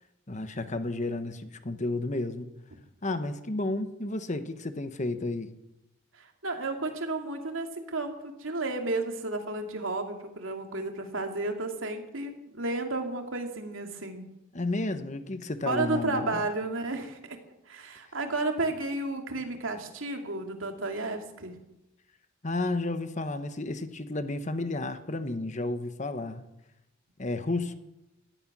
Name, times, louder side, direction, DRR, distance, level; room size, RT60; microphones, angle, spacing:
voice 1, 0.3-2.5 3.0-5.5 14.5-16.4 22.4-26.4 27.2-27.7, left 2 dB, 35° left, 10 dB, 1.1 m, -32 dB
voice 2, 6.1-14.3 15.7-17.4 17.7-21.6, right 2 dB, 80° right, 4 dB, 2.6 m, -32 dB
17.5 x 13.0 x 6.1 m, 0.89 s
head